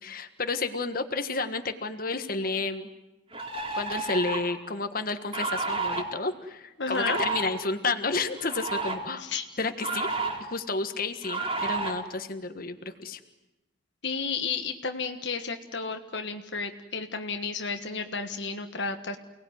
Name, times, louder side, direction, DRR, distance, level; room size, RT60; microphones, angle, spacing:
voice 1, 0.0-2.9 3.7-9.2 9.6-10.1 10.4-13.2, left 3 dB, 50° left, 8 dB, 1.6 m, -31 dB
sound 1, 2.4-2.5 3.3-4.5 5.3-6.0 6.9-7.5 8.4-8.9 9.8-10.4 11.2-11.9, right 3 dB, 30° right, 3.9 m, -31 dB
voice 2, 6.8-7.2 9.2-9.4 14.0-19.2, left 4 dB, 65° left, 6 dB, 1.4 m, -32 dB
29.5 x 19.0 x 9.6 m, 1.0 s
head